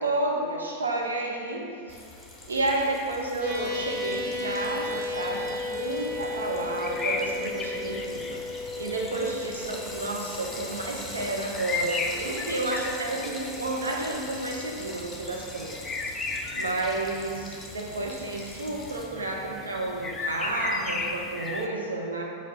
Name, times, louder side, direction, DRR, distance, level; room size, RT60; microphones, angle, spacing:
voice 1, 0.0-1.7 2.5-16.2 16.5-22.2, right 2 dB, 75° right, 0 dB, 0.9 m, -31 dB
Frying (food), 1.9-19.0, left 1 dB, 5° left, 1.1 m, -43 dB
sound 1, 3.4-12.1, left 2 dB, 50° right, 1.2 m, -35 dB
sound 2, 3.6-21.7, left 3 dB, 20° left, 0.5 m, -37 dB
5.0 x 4.5 x 5.4 m, 2.5 s
figure-of-eight pair, 90°, 0 cm